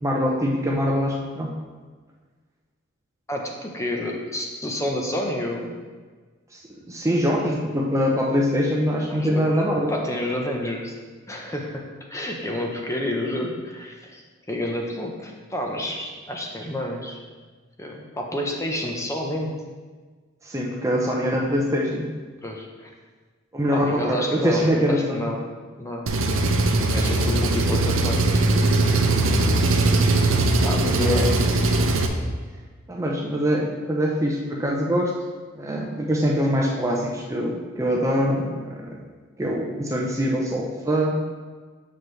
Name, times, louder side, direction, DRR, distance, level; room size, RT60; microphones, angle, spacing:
voice 1, 0.0-1.5 6.5-6.6 6.9-9.9 20.4-22.1 23.5-25.3 29.3-29.4 30.8-31.5 32.9-35.2 35.6-38.9 39.4-41.2, equal, 15° right, -2 dB, 0.6 m, -23 dB
voice 2, 3.3-5.7 9.1-9.6 9.9-10.9 11.3-11.8 12.1-14.2 14.5-17.2 17.8-19.5 22.4-22.9 23.7-25.4 25.8-26.1 26.9-28.6 30.6-31.5, left 1 dB, 15° left, 0 dB, 0.8 m, -29 dB
Engine, 26.1-32.1, right 2 dB, 75° right, 0.6 m, -20 dB
7.2 x 6.0 x 3.3 m, 1.4 s
head